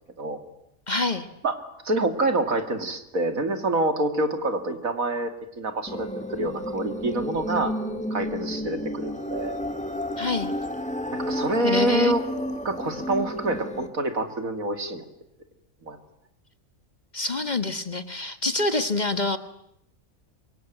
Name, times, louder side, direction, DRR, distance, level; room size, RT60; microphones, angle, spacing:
voice 1, 0.9-1.3 10.2-10.5 11.6-12.1 17.1-19.4, left 3 dB, 30° left, 10 dB, 1.5 m, -26 dB
voice 2, 1.8-5.3 5.6-7.7 8.1-9.6 11.1-12.2 12.6-15.0 15.8-16.0, right 2 dB, 70° right, 7 dB, 2.9 m, -26 dB
sound 1, 5.9-13.9, equal, 5° left, 1.9 m, -31 dB
26.5 x 23.5 x 9.2 m, 0.77 s
omnidirectional pair, 1.5 m